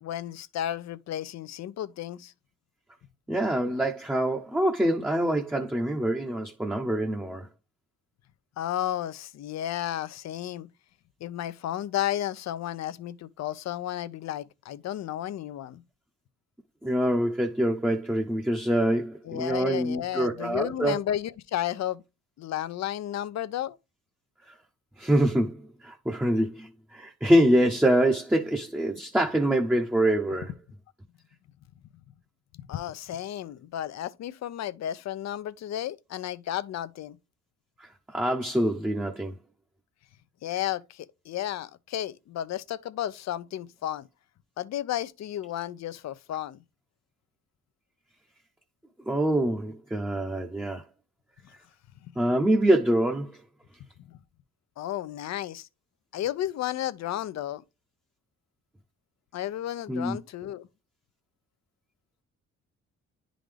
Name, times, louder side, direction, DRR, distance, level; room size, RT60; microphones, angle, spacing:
voice 1, 0.0-2.3 8.6-10.7 11.2-15.8 19.2-22.0 22.4-23.8 32.5-37.2 40.4-44.1 44.6-46.6 52.0-52.1 54.1-54.2 54.8-55.7 56.1-57.6 59.3-60.7, left 12 dB, 60° left, 0.6 m, -33 dB
voice 2, 3.3-7.5 16.8-21.0 25.0-30.5 38.1-39.3 49.1-50.8 52.2-53.3 59.9-60.2, right 1 dB, 5° right, 0.8 m, -25 dB
10.0 x 3.8 x 3.3 m
cardioid pair, 90°, 30 cm